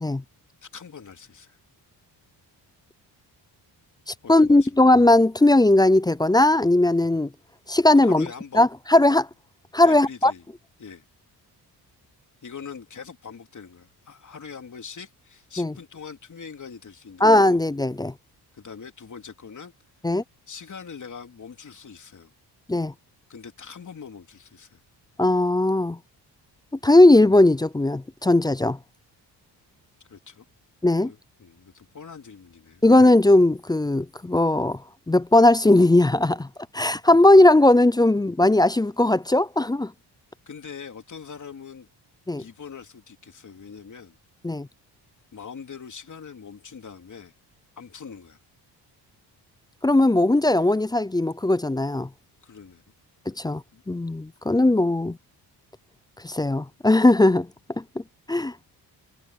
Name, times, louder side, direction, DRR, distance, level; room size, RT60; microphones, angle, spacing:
voice 1, 0.6-1.6 4.2-4.7 8.0-8.6 9.8-10.4 10.8-11.0 12.4-17.6 18.5-19.7 20.5-22.3 23.3-24.8 30.1-30.4 31.0-32.8 40.5-41.9 42.4-44.2 45.3-47.3 47.8-48.4 52.4-52.8 53.7-53.8, left 6 dB, 45° left, 3.4 m, -42 dB
voice 2, 4.1-7.3 7.7-8.3 8.5-9.3 9.7-10.3 15.6-15.7 17.2-18.1 20.0-20.2 22.7-22.9 25.2-26.0 26.8-28.8 30.8-31.1 32.8-34.8 35.1-36.5 36.7-39.9 42.3-42.4 44.4-44.7 49.8-52.1 53.3-53.6 53.9-55.2 56.2-57.5 58.3-58.5, left 2 dB, 10° left, 0.4 m, -18 dB
cardioid pair, 90°, 42 cm